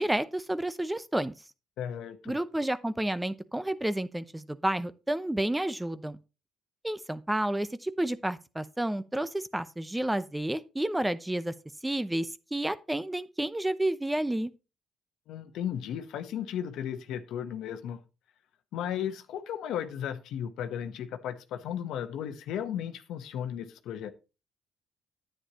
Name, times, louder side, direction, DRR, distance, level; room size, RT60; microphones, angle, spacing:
voice 1, 0.0-1.3 2.3-6.2 6.8-11.5 11.8-14.5, right 1 dB, 10° right, 0.7 m, -30 dB
voice 2, 1.8-2.4 15.3-18.0 18.7-24.1, left 9 dB, 80° left, 1.0 m, -35 dB
9.9 x 8.9 x 3.0 m
supercardioid pair, 75°, 0 cm